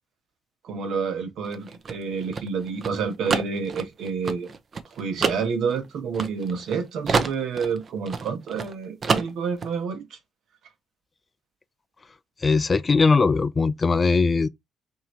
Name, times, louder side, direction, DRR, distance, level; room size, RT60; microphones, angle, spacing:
voice 1, 0.6-4.5 4.9-10.2, right 5 dB, 75° right, 1.3 m, -29 dB
sound 1, 1.4-6.7 7.1-8.7 9.0-9.7, right 5 dB, 45° right, 0.7 m, -28 dB
voice 2, 12.4-14.5, left 4 dB, 30° left, 0.4 m, -20 dB
3.8 x 2.9 x 4.5 m
cardioid pair, 90°, 0 cm